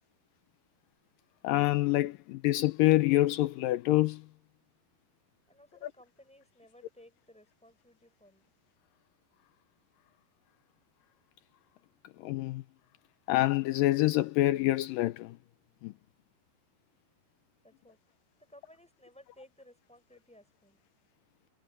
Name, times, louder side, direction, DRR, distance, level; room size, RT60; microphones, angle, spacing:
voice 1, 1.4-4.3 12.2-12.6 13.3-15.4 15.8-15.9, left 17 dB, 85° left, 1.9 m, -26 dB
voice 2, 5.5-8.5 17.6-18.0 18.5-20.8, left 1 dB, ahead, 7.5 m, -58 dB
omnidirectional pair, 4.8 m